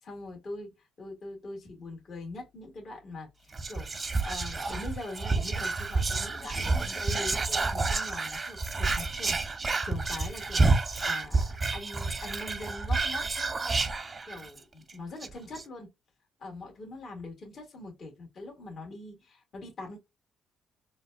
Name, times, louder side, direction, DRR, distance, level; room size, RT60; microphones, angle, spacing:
voice 1, 0.0-13.8 14.3-15.9 16.4-20.0, left 2 dB, 50° left, 1.8 m, -43 dB
Whispering, 3.5-14.6 14.9-15.0 15.2-15.6, right 3 dB, 30° right, 0.5 m, -29 dB
4.0 x 2.2 x 2.4 m
cardioid pair, 90°, 0 cm